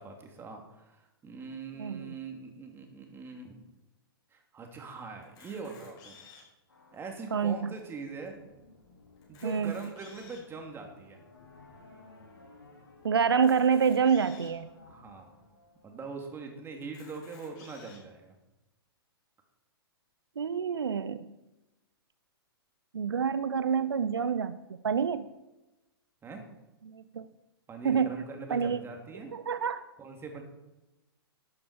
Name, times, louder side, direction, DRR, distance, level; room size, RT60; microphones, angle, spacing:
voice 1, 0.0-3.6 4.3-6.2 6.9-8.4 9.3-11.2 14.9-15.3 15.8-18.4 26.2-26.4 27.7-29.3 30.0-30.4, right 4 dB, 20° right, 3 dB, 2.5 m, -42 dB
voice 2, 1.8-2.1 7.3-7.7 9.4-9.7 13.0-14.7 20.4-21.3 22.9-24.6 24.8-25.3 26.9-27.3 27.8-28.2 28.5-28.8 29.3-29.8, right 6 dB, 80° right, 14 dB, 0.6 m, -27 dB
Camera, 5.2-6.6 7.3-7.4 7.6-7.7 8.3-8.4 9.2-10.5 11.2-11.3 13.3-14.5 15.3-15.4 15.6-15.7 16.8-18.0, left 5 dB, 35° left, 5.5 m, -54 dB
sound 1, 6.7-16.7, left 2 dB, 85° left, 5.1 m, -57 dB
12.0 x 10.5 x 4.9 m, 1.0 s
figure-of-eight pair, 110°, 13 cm